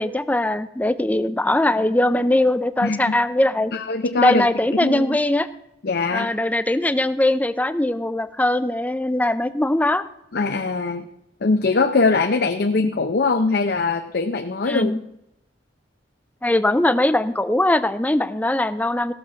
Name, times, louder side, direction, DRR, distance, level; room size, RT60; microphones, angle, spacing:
voice 1, 0.0-3.7 4.2-5.5 6.1-10.0 14.7-15.0 16.4-19.1, left 1 dB, 10° left, 13 dB, 0.5 m, -21 dB
voice 2, 2.8-3.2 3.7-5.2 5.8-6.3 10.3-11.0 11.4-14.9, left 3 dB, 60° left, 7 dB, 0.6 m, -22 dB
16.0 x 6.5 x 5.7 m, 0.82 s
head